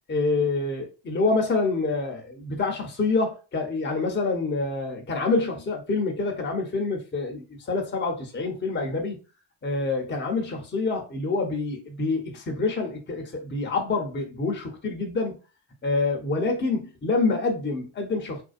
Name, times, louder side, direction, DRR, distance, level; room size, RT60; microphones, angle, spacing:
voice 1, 0.1-9.2 9.6-15.3 15.8-18.4, left 3 dB, 25° left, 0.8 m, -27 dB
2.6 x 2.1 x 2.4 m
supercardioid pair, 70°, 45 cm